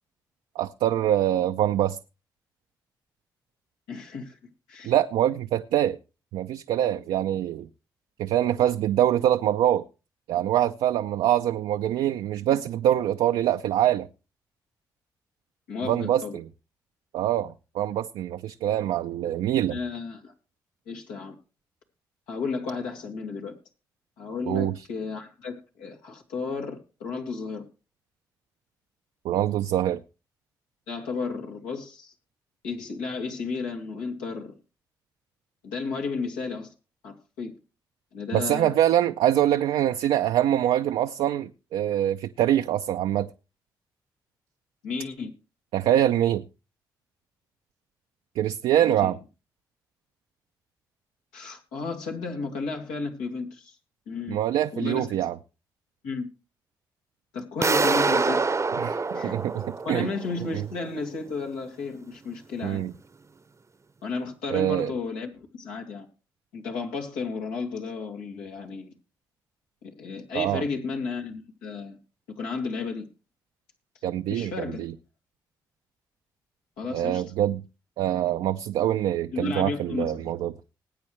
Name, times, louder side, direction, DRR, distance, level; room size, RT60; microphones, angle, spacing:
voice 1, 0.6-2.0 4.8-6.0 6.3-7.7 8.2-9.8 10.3-14.1 15.8-16.4 17.1-19.8 24.5-24.7 29.2-30.0 38.3-43.3 45.7-46.4 48.4-49.2 54.3-55.4 58.8-59.6 59.9-60.1 60.5-60.6 62.6-62.9 64.5-64.9 70.3-70.6 74.0-74.5 74.8-74.9 76.9-77.6 78.0-80.5, right 11 dB, 80° right, 0.5 m, -24 dB
voice 2, 3.9-4.4 4.7-4.9 15.7-16.4 19.7-20.3 20.9-21.3 22.3-23.6 24.2-27.6 30.9-32.1 32.6-34.6 35.6-36.7 37.0-37.5 38.1-38.8 44.8-45.3 48.7-49.2 51.3-53.8 54.1-54.4 54.7-55.3 56.0-56.2 57.3-58.5 59.1-59.4 59.8-62.8 64.0-66.1 66.5-68.9 69.8-72.0 72.4-73.1 74.3-74.9 76.8-77.2 79.3-80.3, left 4 dB, 90° left, 2.5 m, -33 dB
sound 1, 57.6-60.5, right 4 dB, 35° right, 0.8 m, -25 dB
20.0 x 8.6 x 3.2 m
hypercardioid pair, 45°, 9 cm